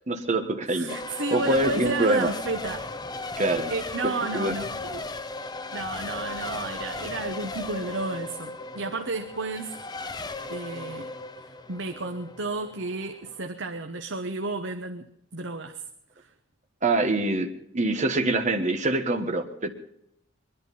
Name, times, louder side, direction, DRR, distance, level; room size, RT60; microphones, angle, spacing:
voice 1, 0.1-1.0 1.3-2.3 3.4-3.7 4.0-4.5 16.8-19.7, right 2 dB, 35° right, 5 dB, 1.4 m, -25 dB
voice 2, 0.7-2.9 3.3-5.0 5.7-9.7 10.5-11.1 11.7-15.8 16.2-16.3, right 3 dB, 65° right, 6 dB, 1.1 m, -32 dB
Race car auto racing / Accelerating revving vroom / Mechanisms, 0.9-13.4, left 3 dB, 20° left, 0.8 m, -36 dB
22.5 x 11.0 x 5.5 m, 0.76 s
head